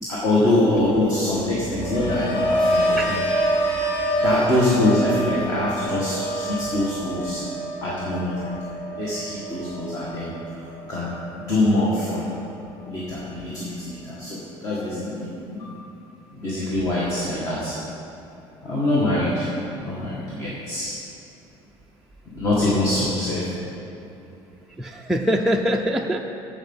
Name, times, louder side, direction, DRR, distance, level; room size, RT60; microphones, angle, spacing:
voice 1, 0.0-3.2 4.2-7.4 7.8-8.5 9.0-11.1 11.4-12.3 12.8-15.7 16.4-17.8 18.6-19.5 19.8-20.9 22.3-23.6, left 1 dB, 35° left, -7 dB, 1.8 m, -24 dB
sound 1, 1.4-11.4 11.8-12.2, right 1 dB, 50° left, 1.9 m, -26 dB
voice 2, 24.8-26.2, equal, 5° right, 0 dB, 0.4 m, -23 dB
15.0 x 5.1 x 5.6 m, 2.8 s
cardioid pair, 160°, 10 cm